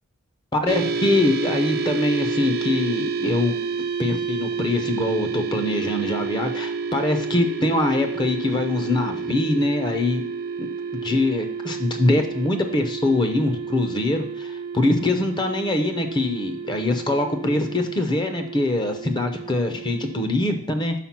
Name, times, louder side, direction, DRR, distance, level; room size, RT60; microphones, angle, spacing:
voice 1, 0.5-3.5 4.0-10.2 10.6-10.7 10.9-20.9, left 2 dB, 20° left, 6 dB, 0.5 m, -23 dB
sound 1, 0.7-20.4, right 5 dB, 45° right, 0.5 m, -30 dB
5.8 x 4.6 x 5.8 m, 0.69 s
head